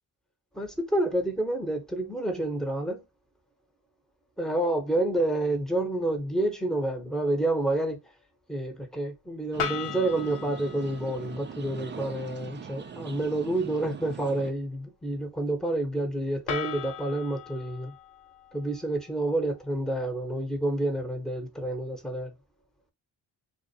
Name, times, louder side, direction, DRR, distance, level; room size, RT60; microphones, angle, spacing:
voice 1, 0.5-3.0 4.4-8.0 8.5-17.9 18.5-22.3, right 1 dB, ahead, 0.8 m, -29 dB
sound 1, 9.5-14.5, right 6 dB, 25° right, 0.4 m, -42 dB
sound 2, 9.6-11.6 16.5-19.6, left 9 dB, 80° left, 0.7 m, -38 dB
2.4 x 2.2 x 2.7 m
supercardioid pair, 45°, 49 cm